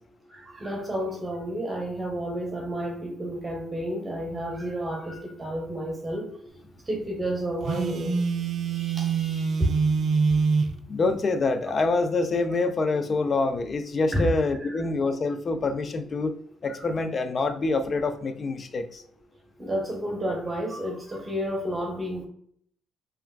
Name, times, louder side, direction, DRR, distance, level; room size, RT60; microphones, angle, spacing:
voice 1, 0.3-6.3 6.9-8.1 8.7-9.7 14.1-14.3 14.6-14.8 16.7-16.9 19.6-22.3, right 1 dB, 25° right, 1 dB, 0.8 m, -31 dB
Telephone, 7.6-10.8, right 5 dB, 55° right, 0.3 m, -25 dB
voice 2, 10.9-16.3 16.6-19.0, left 3 dB, 45° left, 10 dB, 0.3 m, -26 dB
3.2 x 2.3 x 2.2 m, 0.63 s
hypercardioid pair, 50°, 0 cm